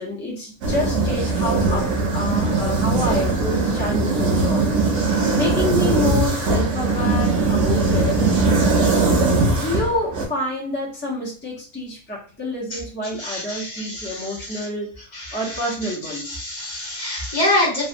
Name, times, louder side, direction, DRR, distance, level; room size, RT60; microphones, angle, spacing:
voice 1, 0.0-4.6 5.3-8.2 8.8-16.5, left 1 dB, 15° left, -4 dB, 0.4 m, -28 dB
sound 1, 0.6-10.3, right 3 dB, 65° right, 0.9 m, -20 dB
voice 2, 13.2-14.7 15.1-17.9, left 1 dB, 35° left, -3 dB, 0.8 m, -26 dB
3.2 x 2.2 x 2.5 m, 0.38 s
omnidirectional pair, 1.5 m